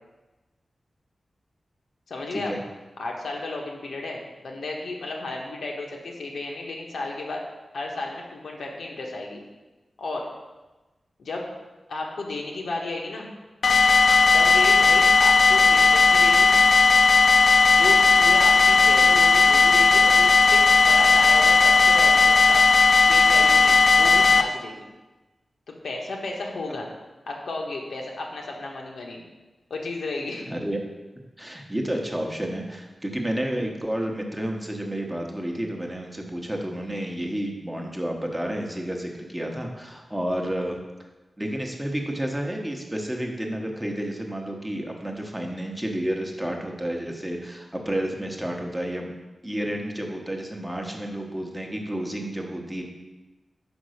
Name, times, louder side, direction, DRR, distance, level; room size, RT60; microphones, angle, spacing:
voice 1, 2.1-2.6 3.0-7.4 7.7-9.4 10.0-10.3 11.2-11.5 11.9-13.3 14.3-16.5 17.7-22.6 23.1-24.9 25.7-26.9 27.3-29.2 29.7-30.5, left 2 dB, 90° left, 0 dB, 1.2 m, -33 dB
sound 1, 13.6-24.4, left 4 dB, 60° left, 0.4 m, -16 dB
voice 2, 30.5-30.8 31.4-40.8 41.4-49.1 49.4-52.8, right 1 dB, 10° right, 1 dB, 0.9 m, -30 dB
5.2 x 5.0 x 6.4 m, 1.1 s
wide cardioid pair, 160°, 0 cm